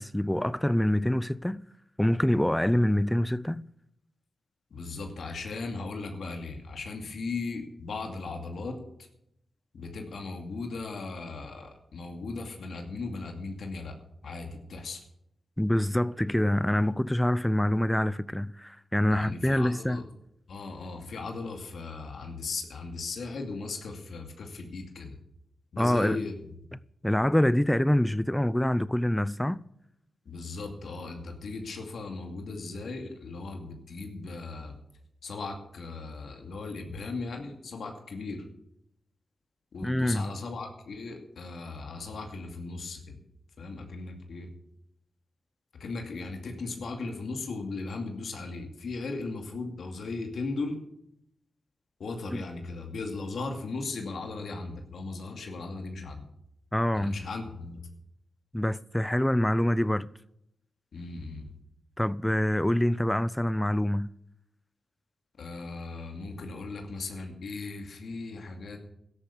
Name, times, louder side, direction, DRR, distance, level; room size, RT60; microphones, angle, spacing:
voice 1, 0.0-1.6 2.0-3.6 15.6-20.0 25.8-26.3 27.0-29.6 39.8-40.3 52.3-52.4 56.7-57.2 58.5-60.1 62.0-64.1, left 1 dB, 10° left, 0.5 m, -25 dB
voice 2, 4.7-8.8 9.7-13.9 14.2-15.0 19.1-20.0 20.5-25.2 25.7-26.3 30.3-34.8 35.2-38.4 39.7-43.2 43.6-44.5 45.7-50.8 52.0-56.2 56.9-57.8 60.9-61.4 65.4-68.8, left 3 dB, 75° left, 2.4 m, -37 dB
13.0 x 11.0 x 6.9 m
cardioid pair, 60°, 0 cm